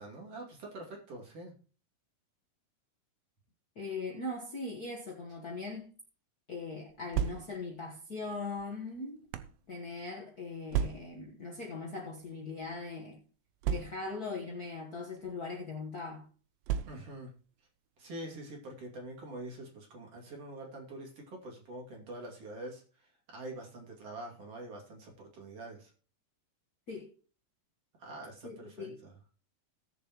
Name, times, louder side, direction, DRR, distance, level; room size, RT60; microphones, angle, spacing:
voice 1, 0.0-1.5 16.9-17.3 18.0-25.9 28.0-29.1, right 1 dB, 45° right, 3.4 m, -45 dB
voice 2, 3.7-5.9 6.5-9.3 9.7-13.2 13.7-16.3 26.9-27.1 28.4-29.0, left 3 dB, 90° left, 0.8 m, -40 dB
sound 1, 6.9-7.8 8.6-9.6 10.7-11.3 12.2-12.4 12.6-12.7 13.6-14.3 15.2-15.4 16.6-17.3, right 9 dB, 90° right, 2.5 m, -34 dB
18.5 x 6.9 x 3.0 m
omnidirectional pair, 4.0 m